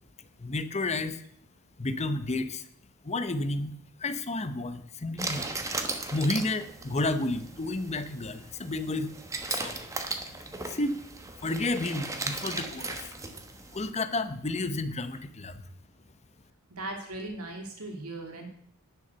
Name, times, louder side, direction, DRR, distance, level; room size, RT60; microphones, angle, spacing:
voice 1, 0.4-1.2 1.8-2.7 3.0-3.7 4.0-5.4 6.1-9.1 9.5-9.8 10.6-11.0 11.4-13.1 13.7-15.6, left 2 dB, 30° left, 11 dB, 0.8 m, -31 dB
sound 1, 5.2-13.9, right 3 dB, 15° right, 1.1 m, -37 dB
voice 2, 16.7-18.5, right 2 dB, 80° right, 2 dB, 2.7 m, -38 dB
10.5 x 6.7 x 6.8 m, 0.66 s
head